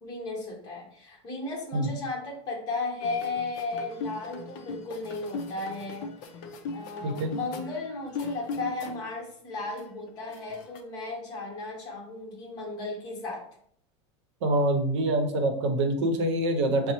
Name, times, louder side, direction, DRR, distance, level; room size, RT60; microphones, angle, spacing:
voice 1, 0.0-6.1 6.7-13.4, left 3 dB, 25° left, -1 dB, 1.0 m, -35 dB
traditional moroccan music, 3.0-9.2 9.5-10.8, left 4 dB, 45° left, 0.4 m, -39 dB
voice 2, 14.4-16.9, right 1 dB, 75° right, 6 dB, 0.7 m, -25 dB
5.6 x 2.0 x 2.9 m, 0.64 s
supercardioid pair, 175°, 15 cm